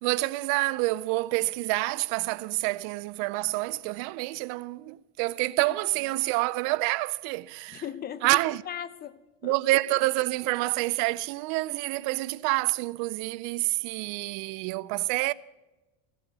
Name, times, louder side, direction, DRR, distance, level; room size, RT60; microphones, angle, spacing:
voice 1, 0.0-7.8 8.2-8.6 9.4-15.3, right 21 dB, 60° right, 0.5 m, -28 dB
voice 2, 7.7-9.5, left 9 dB, 30° left, 0.7 m, -38 dB
16.0 x 7.6 x 8.0 m
supercardioid pair, 130°, 31 cm